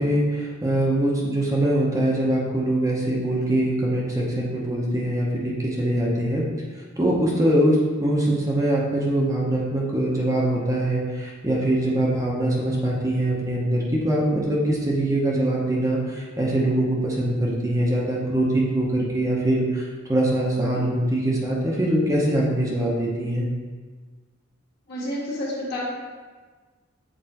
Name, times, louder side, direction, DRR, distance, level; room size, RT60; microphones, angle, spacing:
voice 1, 0.0-6.4 7.0-23.5, right 1 dB, 15° right, -3 dB, 0.8 m, -23 dB
voice 2, 24.9-25.8, left 1 dB, 55° left, -6 dB, 1.7 m, -29 dB
7.6 x 4.2 x 2.9 m, 1.4 s
head